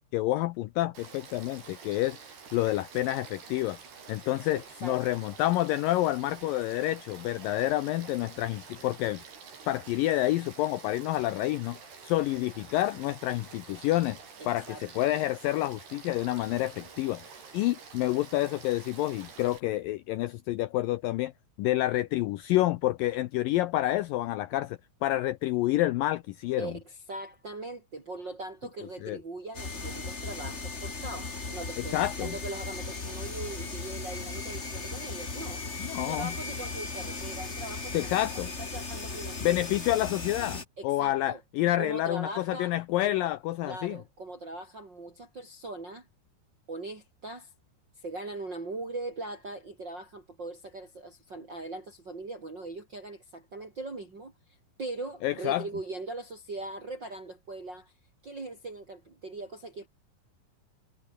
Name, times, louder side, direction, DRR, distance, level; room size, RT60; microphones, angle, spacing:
voice 1, 0.1-2.2 2.5-3.8 4.1-9.2 9.7-11.8 12.0-14.2 14.5-21.3 21.6-26.7 29.0-29.2 31.9-32.4 35.8-36.3 37.9-38.5 39.4-44.0 55.2-55.6, left 15 dB, 90° left, 2.0 m, -28 dB
Frog / Stream, 0.9-19.6, right 5 dB, 70° right, 7.8 m, -48 dB
voice 2, 4.5-5.2 14.4-14.8 26.6-39.6 40.8-41.4 41.8-43.3 43.7-46.1 46.7-47.5 48.0-54.3 54.8-57.9 58.2-59.9, right 2 dB, 25° right, 4.2 m, -40 dB
sound 1, 29.5-40.6, left 3 dB, 25° left, 1.9 m, -37 dB
omnidirectional pair, 4.8 m